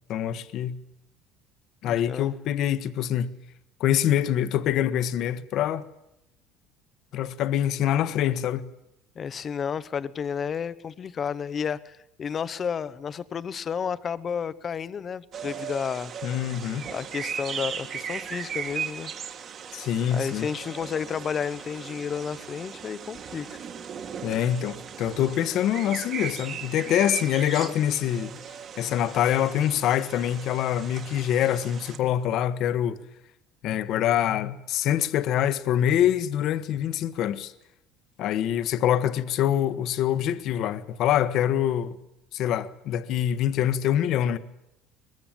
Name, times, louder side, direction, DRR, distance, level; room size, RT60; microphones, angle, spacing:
voice 1, 0.1-0.8 1.8-3.3 3.8-5.8 7.1-8.7 16.2-16.9 19.7-20.5 24.2-28.4 28.8-33.0 33.6-37.5 38.2-42.0 42.3-44.4, left 11 dB, 45° left, 1.3 m, -25 dB
voice 2, 1.8-2.3 9.2-16.1 16.9-19.1 20.1-23.6 27.6-27.7, left 7 dB, 25° left, 0.9 m, -32 dB
sound 1, 15.3-32.0, right 7 dB, 30° right, 2.0 m, -38 dB
23.0 x 21.5 x 9.0 m
cardioid pair, 170°, 0 cm